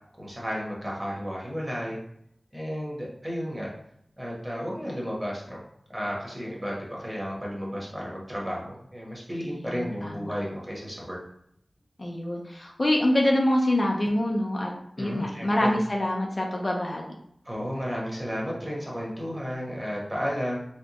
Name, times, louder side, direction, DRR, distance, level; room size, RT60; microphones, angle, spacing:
voice 1, 0.2-2.0 2.5-3.7 4.2-5.6 5.9-11.2 15.0-15.7 17.4-20.6, equal, 15° right, -3 dB, 1.1 m, -33 dB
voice 2, 9.5-10.3 12.0-14.7 15.0-17.1, left 1 dB, 45° left, -1 dB, 0.5 m, -25 dB
4.2 x 2.2 x 2.9 m, 0.72 s
wide cardioid pair, 70°, 0 cm